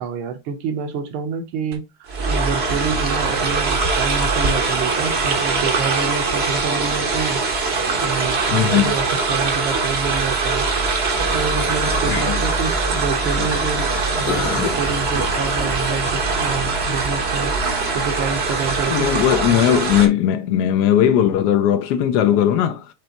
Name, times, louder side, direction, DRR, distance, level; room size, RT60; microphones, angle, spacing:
voice 1, 0.0-7.4 8.0-10.7 11.3-17.5 17.9-19.7, right 6 dB, 75° right, 1.7 m, -28 dB
sound 1, 1.7-1.8 2.1-20.1, right 3 dB, 50° right, 0.7 m, -22 dB
voice 2, 8.5-8.9 12.1-12.4 13.4-13.5 18.9-22.9, left 10 dB, 80° left, 0.9 m, -18 dB
sound 2, 11.1-17.1, left 4 dB, 55° left, 1.2 m, -31 dB
5.4 x 3.3 x 2.8 m
omnidirectional pair, 2.4 m